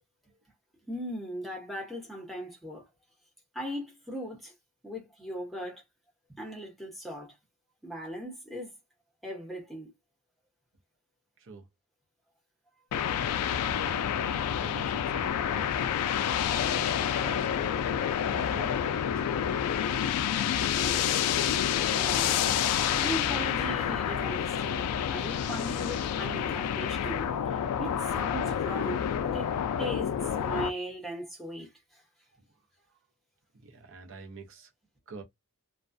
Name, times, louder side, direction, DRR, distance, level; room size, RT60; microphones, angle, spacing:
voice 1, 0.9-2.8 3.5-4.5 4.8-5.8 6.3-7.3 7.8-8.7 9.2-9.9 16.5-16.6 20.5-20.6 21.1-21.4 21.9-27.3 27.8-29.5 29.8-32.0, equal, ahead, 0.9 m, -38 dB
sound 1, 12.9-30.7, left 9 dB, 85° left, 0.3 m, -28 dB
voice 2, 13.6-15.9 16.5-17.7 18.3-19.5 33.5-34.7 35.1-35.2, right 3 dB, 60° right, 0.7 m, -46 dB
2.3 x 2.2 x 2.5 m
head